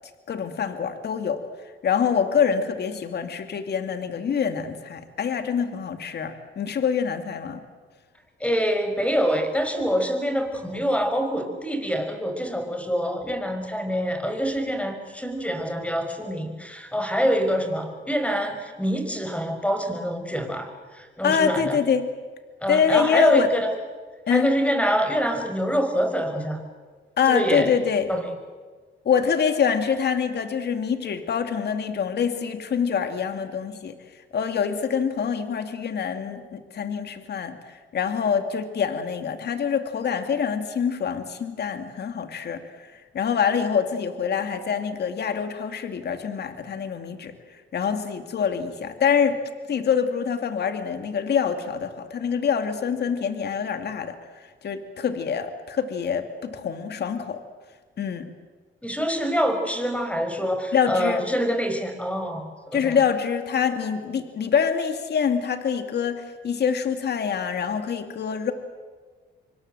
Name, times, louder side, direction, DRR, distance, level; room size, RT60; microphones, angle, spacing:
voice 1, 0.3-1.4 1.8-7.6 21.2-22.1 22.7-23.5 24.3-24.5 27.2-28.1 29.0-34.0 34.3-47.3 47.7-49.4 49.7-57.4 58.0-58.3 60.7-61.2 62.7-68.5, left 7 dB, 55° left, 8 dB, 2.5 m, -25 dB
voice 2, 8.4-21.8 22.6-23.7 24.3-26.6 27.3-27.7 28.1-28.3 58.8-63.0, equal, 5° left, 6 dB, 5.7 m, -25 dB
27.0 x 24.0 x 7.9 m, 1.5 s
cardioid pair, 90°, 20 cm